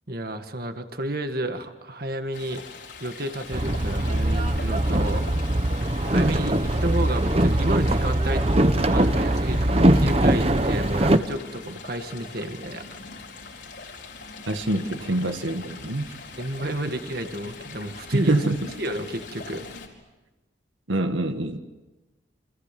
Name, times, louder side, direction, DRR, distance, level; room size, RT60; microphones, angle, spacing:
voice 1, 0.1-2.6 3.0-5.3 6.1-8.4 8.7-12.9 16.4-18.4 18.8-19.7, right 1 dB, 50° right, 7 dB, 1.8 m, -31 dB
Stream, 2.3-19.9, left 4 dB, 65° left, 4.6 m, -42 dB
Boat Water vehicle, 3.5-11.2, right 1 dB, 30° right, 1.0 m, -21 dB
voice 2, 14.5-16.1 18.1-18.7 20.9-21.6, right 2 dB, 85° right, 7 dB, 1.7 m, -25 dB
29.0 x 26.5 x 7.6 m, 1.1 s
head